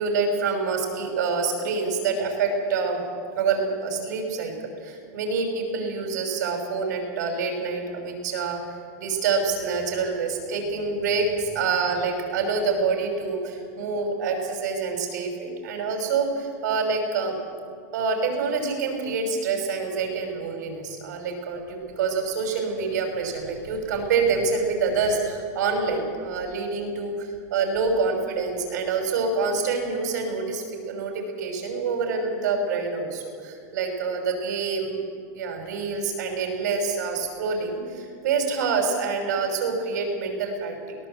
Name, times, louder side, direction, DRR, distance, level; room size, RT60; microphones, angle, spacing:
voice 1, 0.0-3.0 3.4-8.6 9.0-17.4 17.9-35.0 35.3-41.0, right 4 dB, 75° right, 3 dB, 6.1 m, -26 dB
22.0 x 18.0 x 8.1 m, 2.2 s
supercardioid pair, 160°, 10 cm